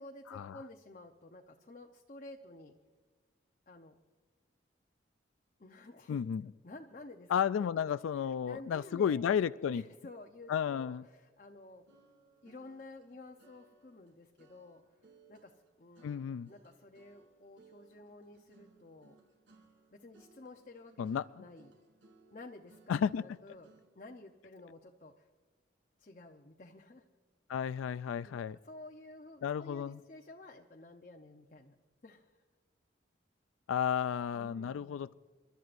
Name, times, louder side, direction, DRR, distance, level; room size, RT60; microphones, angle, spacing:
voice 1, 0.0-2.7 3.7-4.0 5.6-6.2 6.6-7.3 7.6-7.7 8.2-9.3 9.7-11.8 12.4-15.5 15.8-19.2 19.9-21.7 22.3-23.7 23.9-25.3 26.0-27.0 28.1-31.7 32.0-32.4 34.3-35.0, left 2 dB, 40° left, 3 dB, 0.7 m, -52 dB
voice 2, 6.1-6.5 7.3-9.8 10.5-11.0 16.0-16.5 21.0-21.3 22.9-23.2 27.5-28.6 29.4-30.0 33.7-35.1, left 8 dB, 85° left, 15 dB, 0.3 m, -32 dB
sound 1, 11.9-24.0, right 3 dB, 80° right, 3.3 m, -65 dB
29.5 x 12.5 x 2.6 m, 1.5 s
head